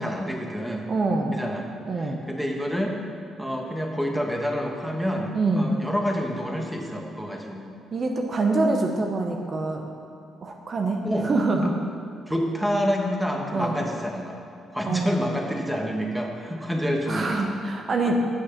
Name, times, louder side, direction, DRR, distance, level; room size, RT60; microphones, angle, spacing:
voice 1, 0.0-0.9 1.3-1.7 2.0-3.0 3.4-7.7 11.0-11.3 11.6-11.7 12.3-14.4 14.7-17.5 18.0-18.2, equal, 5° right, 1 dB, 1.2 m, -28 dB
voice 2, 0.9-1.4 1.9-2.2 5.3-5.7 7.9-9.8 10.4-11.7 13.5-13.8 14.9-15.1 17.1-18.2, right 3 dB, 45° right, 2 dB, 0.8 m, -25 dB
8.6 x 6.2 x 5.9 m, 2.5 s
cardioid pair, 90°, 0 cm